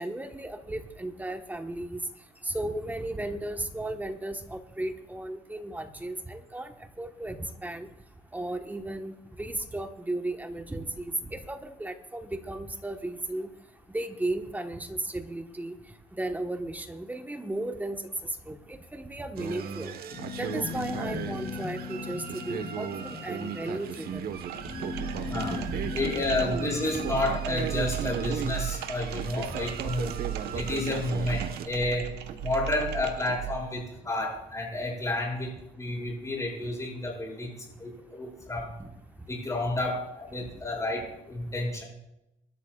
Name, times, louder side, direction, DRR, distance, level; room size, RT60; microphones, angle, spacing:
voice 1, 0.0-2.0 2.5-6.7 7.0-7.4 7.6-7.9 8.3-9.1 9.4-13.5 13.9-15.7 16.2-18.0 18.5-19.9 20.4-24.3 26.3-26.4 29.8-30.0 38.8-38.9, right 1 dB, 10° right, 6 dB, 1.3 m, -35 dB
sound 1, 19.4-31.7, right 7 dB, 65° right, 1.2 m, -37 dB
sound 2, 20.1-29.0, left 4 dB, 40° left, 3.3 m, -39 dB
sound 3, 24.3-33.6, right 12 dB, 80° right, 1.2 m, -36 dB
voice 2, 25.3-25.6 25.9-30.2 30.5-32.1 32.4-38.7 39.3-41.8, left 2 dB, 20° left, -1 dB, 6.5 m, -31 dB
24.0 x 13.0 x 2.4 m, 0.87 s
cardioid pair, 110°, 17 cm